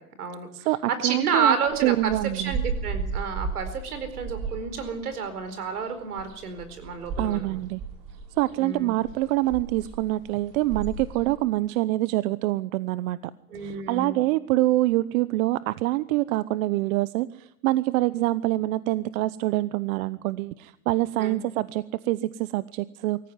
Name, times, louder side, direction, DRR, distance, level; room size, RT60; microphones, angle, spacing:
voice 1, 0.0-0.7 1.0-7.6 8.6-8.9 13.5-14.2 21.2-21.4, right 5 dB, 90° right, 10 dB, 4.6 m, -30 dB
voice 2, 0.5-1.6 1.8-2.6 7.2-7.8 8.4-13.2 13.6-23.2, right 17 dB, 65° right, 16 dB, 0.9 m, -25 dB
sound 1, 1.6-11.4, right 4 dB, 45° right, 5.6 m, -35 dB
24.5 x 14.5 x 9.6 m, 0.80 s
hypercardioid pair, 105°, 44 cm